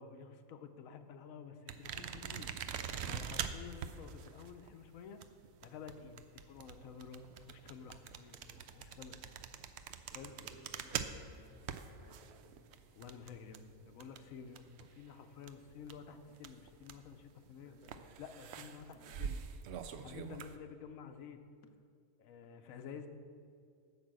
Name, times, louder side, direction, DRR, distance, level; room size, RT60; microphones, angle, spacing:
voice 1, 0.0-2.5 3.0-5.2 5.6-9.2 10.0-10.3 12.9-17.7 18.2-19.4 20.0-21.4 22.2-23.1, left 6 dB, 85° left, 8 dB, 1.1 m, -51 dB
sound 1, 1.7-15.1 15.3-17.2 17.8-20.5, right 8 dB, 65° right, 0.7 m, -44 dB
voice 2, 10.1-12.6 17.6-17.9 18.6-18.7 18.9-19.2 23.0-23.1, right 1 dB, 35° right, -1 dB, 1.4 m, -61 dB
8.7 x 5.8 x 7.5 m, 2.4 s
omnidirectional pair, 1.4 m